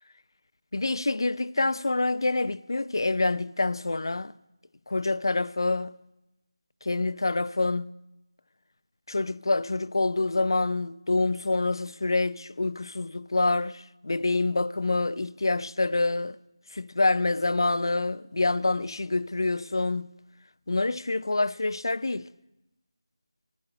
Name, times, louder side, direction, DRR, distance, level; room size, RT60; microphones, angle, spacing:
voice 1, 0.7-4.3 4.9-5.9 6.8-7.9 9.1-16.4 16.7-20.1 20.7-22.3, left 2 dB, 60° left, 0.4 m, -26 dB
14.0 x 6.6 x 9.0 m
figure-of-eight pair, 180°, 3 cm